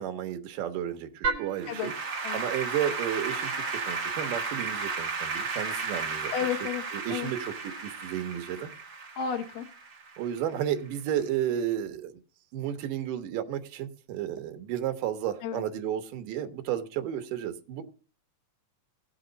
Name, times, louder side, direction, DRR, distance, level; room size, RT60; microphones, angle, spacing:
voice 1, 0.0-1.9 2.3-6.3 6.9-8.7 10.2-12.2 12.5-17.8, right 10 dB, 75° right, 2.5 m, -32 dB
Applause / Keyboard (musical), 1.2-10.6, right 4 dB, 55° right, 1.3 m, -33 dB
voice 2, 6.3-6.8 7.1-7.3 9.2-9.7 15.4-15.6, left 8 dB, 80° left, 2.5 m, -32 dB
18.0 x 6.1 x 3.9 m
omnidirectional pair, 4.0 m